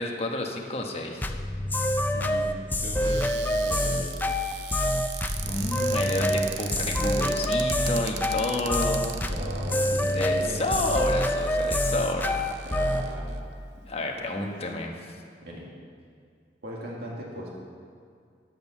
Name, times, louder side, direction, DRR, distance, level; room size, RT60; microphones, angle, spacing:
voice 1, 0.0-1.3 5.4-9.1 10.1-12.5 13.9-15.2, left 2 dB, 35° left, 1 dB, 1.2 m, -30 dB
sound 1, 1.2-13.1, left 1 dB, 10° left, 0.4 m, -26 dB
voice 2, 2.1-4.1 9.3-10.6 12.7-13.3 15.4-15.7 16.6-17.5, equal, 60° right, -3 dB, 1.9 m, -38 dB
Cupboard open or close, 3.0-13.4 14.0-14.1 14.4-14.7, right 8 dB, 75° right, 0.6 m, -40 dB
10.5 x 7.8 x 7.1 m, 2.2 s
head